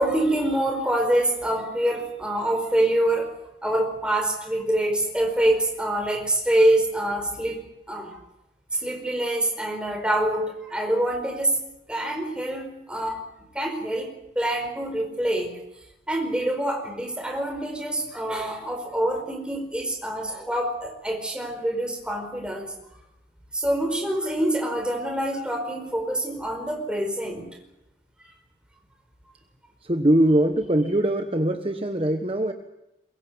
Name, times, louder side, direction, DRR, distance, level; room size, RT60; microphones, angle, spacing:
voice 1, 0.0-3.3 3.6-8.2 8.7-11.6 11.9-13.2 13.5-15.5 16.1-22.7 23.5-27.5, right 1 dB, 5° right, 3 dB, 4.8 m, -25 dB
voice 2, 29.9-32.5, right 1 dB, 30° right, 6 dB, 1.2 m, -22 dB
22.5 x 22.5 x 7.9 m, 0.88 s
head